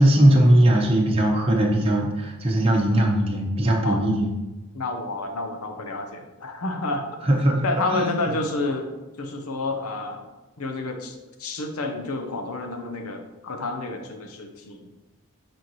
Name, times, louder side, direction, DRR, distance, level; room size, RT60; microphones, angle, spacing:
voice 1, 0.0-4.3 7.2-7.5 7.9-8.1, right 1 dB, 25° right, -2 dB, 0.8 m, -19 dB
voice 2, 4.7-7.1 7.6-8.9 9.2-10.3 10.6-14.8, left 2 dB, 80° left, 5 dB, 0.9 m, -29 dB
8.9 x 4.5 x 3.0 m, 1.1 s
head